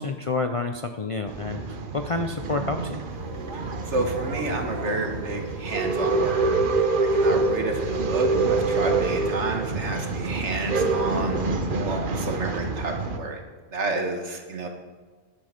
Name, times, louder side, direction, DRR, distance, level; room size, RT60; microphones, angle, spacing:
voice 1, 0.0-3.0, left 3 dB, 45° left, 6 dB, 0.4 m, -29 dB
Male speech man speaking / Chatter / Rattle, 1.3-13.2, right 3 dB, 50° right, 1.1 m, -26 dB
sound 1, 3.1-8.2, right 2 dB, 20° right, 1.7 m, -45 dB
voice 2, 3.5-13.4 13.7-14.7, right 2 dB, 75° right, 3 dB, 1.8 m, -30 dB
10.5 x 10.0 x 5.1 m, 1.4 s
omnidirectional pair, 1.2 m